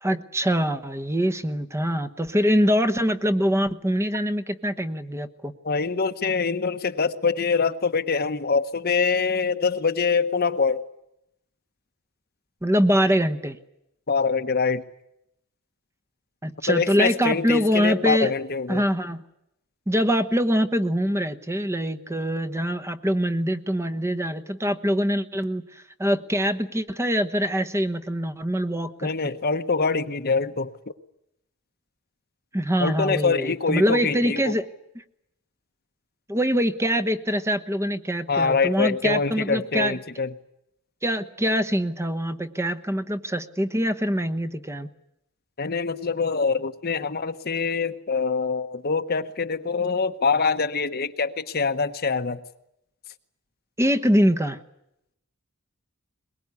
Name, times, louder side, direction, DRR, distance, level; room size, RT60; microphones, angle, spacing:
voice 1, 0.0-5.5 12.6-13.6 16.4-18.3 18.7-19.2 19.9-25.6 26.0-29.1 32.5-34.6 36.3-40.0 41.0-44.9 53.8-54.6, equal, 10° right, 9 dB, 1.1 m, -24 dB
voice 2, 5.6-10.8 14.1-14.8 16.7-18.8 29.0-30.7 32.8-34.5 38.3-40.3 45.6-52.4, left 4 dB, 45° left, 9 dB, 1.1 m, -24 dB
22.5 x 21.0 x 9.6 m, 0.81 s
head